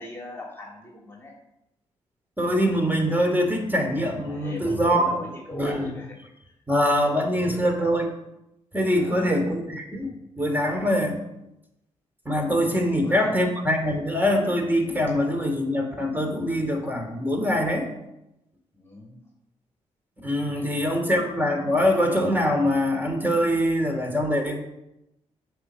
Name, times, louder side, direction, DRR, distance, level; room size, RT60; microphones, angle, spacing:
voice 1, 0.0-1.3 4.3-6.2 6.4-6.5 7.1-7.8 8.9-9.5 12.7-13.4 18.7-19.2 20.2-21.0, left 2 dB, 20° left, -2 dB, 3.1 m, -40 dB
voice 2, 2.4-5.0 5.5-5.9 6.7-8.1 8.7-11.2 12.2-17.9 20.2-24.6, equal, 15° right, 4 dB, 3.1 m, -23 dB
8.4 x 6.8 x 7.5 m, 0.88 s
supercardioid pair, 60°, 12 cm